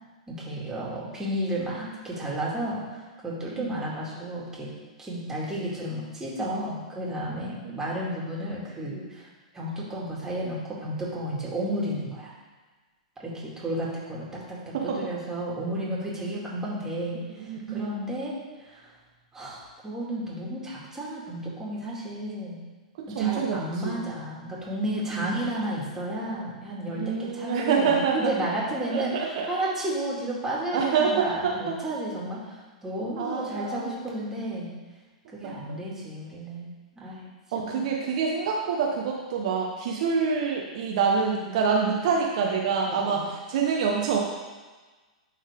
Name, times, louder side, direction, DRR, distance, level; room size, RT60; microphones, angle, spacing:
voice 1, 0.3-4.7 5.0-9.3 9.5-12.3 13.2-17.2 17.7-18.9 19.3-22.6 23.1-34.7 35.3-36.7 37.0-37.3 37.7-37.8 42.9-43.3, right 1 dB, 10° right, -6 dB, 2.5 m, -32 dB
voice 2, 7.5-7.8 14.7-15.0 17.4-17.9 23.0-23.6 23.8-24.0 25.1-25.3 26.9-28.3 28.9-29.5 30.7-31.8 33.2-34.1 35.4-35.5 37.5-43.2 43.5-44.2, right 5 dB, 60° right, -1 dB, 1.0 m, -26 dB
11.0 x 4.0 x 3.7 m, 1.3 s
hypercardioid pair, 120°, 4 cm